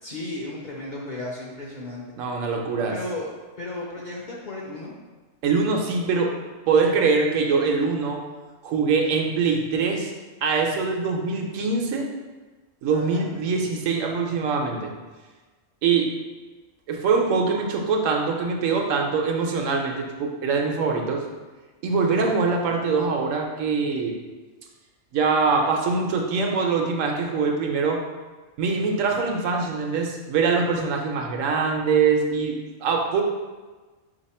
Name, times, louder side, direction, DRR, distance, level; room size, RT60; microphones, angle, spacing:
voice 1, 0.0-2.0 2.9-3.3 3.6-4.9 12.9-13.2, left 2 dB, 50° left, -3 dB, 0.6 m, -34 dB
voice 2, 2.2-3.0 5.4-6.3 6.7-8.2 8.6-10.1 10.4-12.1 12.8-14.9 15.8-16.1 16.9-21.2 21.8-24.1 25.1-28.0 28.6-33.2, right 4 dB, 80° right, 1 dB, 1.0 m, -23 dB
4.1 x 2.8 x 4.2 m, 1.3 s
omnidirectional pair, 1.3 m